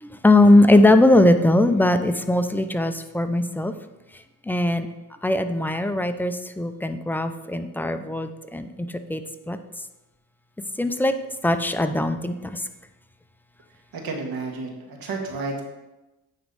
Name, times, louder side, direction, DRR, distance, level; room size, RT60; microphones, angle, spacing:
voice 1, 0.0-3.7 4.5-4.9 5.2-9.6 10.8-11.1 11.4-12.6, left 1 dB, 5° left, 8 dB, 0.4 m, -20 dB
voice 2, 13.9-15.6, right 3 dB, 70° right, 1 dB, 1.5 m, -31 dB
9.3 x 3.1 x 5.3 m, 1.0 s
cardioid pair, 100°, 38 cm